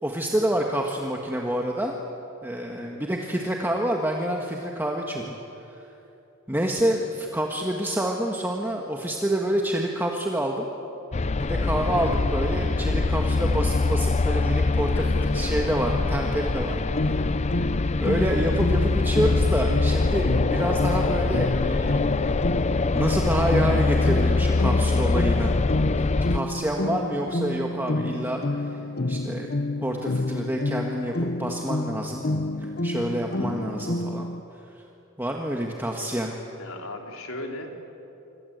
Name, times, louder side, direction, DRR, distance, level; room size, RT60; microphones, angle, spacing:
voice 1, 0.0-1.9 2.4-5.3 5.7-5.9 6.5-10.6 11.4-15.0 15.3-17.3 18.0-22.4 22.9-25.5 26.3-28.8 29.1-29.5 29.8-32.2 32.6-34.6 35.2-36.3, right 1 dB, 10° right, 0 dB, 1.6 m, -28 dB
sound 1, 11.1-26.4, left 3 dB, 30° left, 0.5 m, -24 dB
voice 2, 14.9-15.7 36.0-36.1 36.6-37.7, left 1 dB, 75° left, 2 dB, 3.3 m, -37 dB
sound 2, 16.9-34.4, left 2 dB, 50° left, 1.0 m, -29 dB
26.5 x 25.0 x 8.1 m, 2.9 s
head